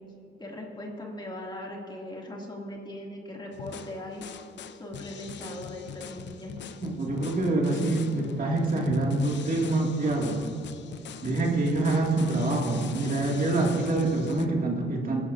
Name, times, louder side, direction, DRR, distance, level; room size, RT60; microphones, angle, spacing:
voice 1, 0.4-4.2 4.8-6.5, left 1 dB, 20° left, -2 dB, 2.6 m, -39 dB
sound 1, 3.5-14.5, left 7 dB, 65° left, 0.7 m, -42 dB
voice 2, 6.8-10.4 11.2-15.2, right 2 dB, 45° right, -1 dB, 2.4 m, -26 dB
23.5 x 11.0 x 2.7 m, 2.6 s
cardioid pair, 90°, 20 cm